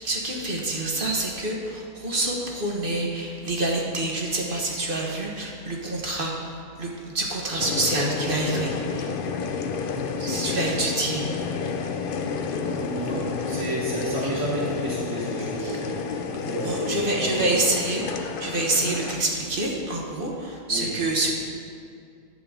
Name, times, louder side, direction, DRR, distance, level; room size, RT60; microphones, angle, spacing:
voice 1, 0.0-9.1 10.2-11.2 15.6-15.8 16.6-21.3, right 2 dB, 40° right, -1 dB, 1.3 m, -27 dB
sound 1, 7.6-19.2, left 5 dB, 75° left, 0.5 m, -30 dB
voice 2, 12.5-17.7 20.7-20.9, right 1 dB, 20° right, -6 dB, 1.2 m, -31 dB
10.5 x 7.9 x 3.8 m, 2.4 s
omnidirectional pair, 1.6 m